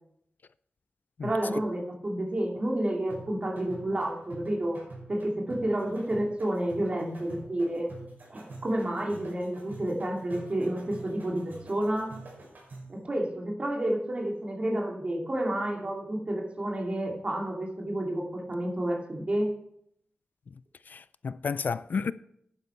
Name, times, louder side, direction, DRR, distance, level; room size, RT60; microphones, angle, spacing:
voice 1, 1.2-4.8 5.1-8.0 8.3-12.2 12.9-19.5, right 1 dB, 35° right, 2.4 m, -30 dB
sound 1, 3.1-13.0, right 2 dB, 55° right, 5.4 m, -47 dB
voice 2, 20.9-22.1, left 5 dB, 55° left, 0.3 m, -31 dB
11.0 x 9.8 x 4.5 m
wide cardioid pair, 120°, 4 cm